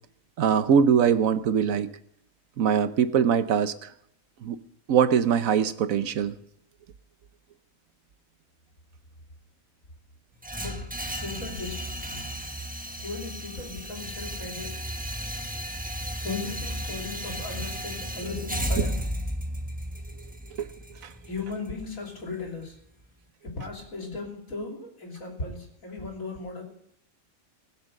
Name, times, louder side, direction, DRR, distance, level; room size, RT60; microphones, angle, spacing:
voice 1, 0.4-1.9 2.6-3.9 4.4-4.6 4.9-6.3 18.8-18.9 20.6-20.7 21.0-21.1, right 7 dB, 80° right, 12 dB, 1.2 m, -22 dB
sound 1, 10.4-22.5, equal, 5° right, 1.1 m, -34 dB
voice 2, 10.6-12.1 13.0-14.8 16.2-19.0 21.2-22.8 23.4-26.6, left 3 dB, 75° left, 0 dB, 3.5 m, -37 dB
20.0 x 7.3 x 6.6 m, 0.74 s
omnidirectional pair, 1.4 m